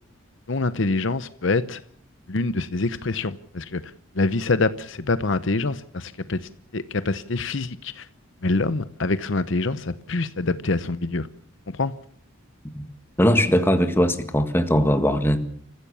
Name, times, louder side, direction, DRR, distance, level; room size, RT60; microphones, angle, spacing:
voice 1, 0.5-1.8 2.3-3.8 4.2-6.4 6.7-8.0 8.4-11.3 11.7-11.9, left 3 dB, 60° left, 0.8 m, -25 dB
voice 2, 13.2-15.4, equal, 10° left, 1.7 m, -20 dB
29.5 x 15.0 x 7.0 m
head